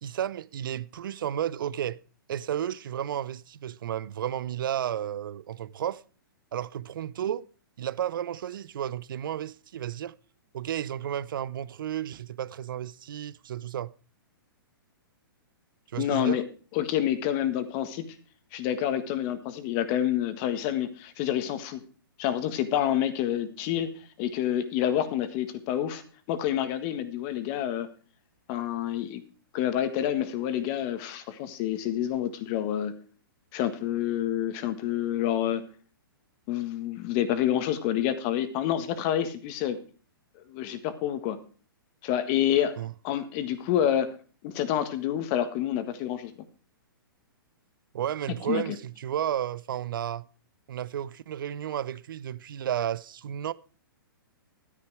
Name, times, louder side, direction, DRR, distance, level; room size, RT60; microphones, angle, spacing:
voice 1, 0.0-2.0 2.3-6.0 6.5-7.4 7.8-10.1 10.5-13.9 15.9-16.4 42.8-42.9 47.9-50.2 50.7-53.5, right 10 dB, 65° right, 0.6 m, -32 dB
voice 2, 16.0-16.4 16.7-18.0 18.5-21.8 22.2-23.9 24.2-26.0 26.3-27.9 28.5-29.2 29.5-32.9 33.5-35.6 36.5-39.8 40.5-41.4 42.0-42.7 43.0-44.1 44.4-46.3 48.5-48.6, left 11 dB, 35° left, 1.6 m, -28 dB
12.5 x 9.9 x 4.7 m
hypercardioid pair, 125°, 12 cm